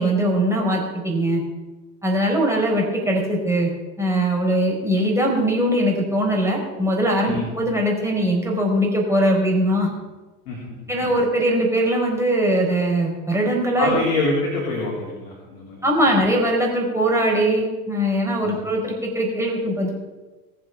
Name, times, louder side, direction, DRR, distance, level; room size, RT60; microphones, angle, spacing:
voice 1, 0.0-1.4 2.0-3.7 4.0-9.9 10.9-14.0 15.8-19.9, right 1 dB, 5° right, -1 dB, 4.7 m, -21 dB
voice 2, 13.8-15.8 18.4-18.6, left 2 dB, 60° left, -4 dB, 4.1 m, -25 dB
19.5 x 7.4 x 6.0 m, 1.2 s
figure-of-eight pair, 65°, 47 cm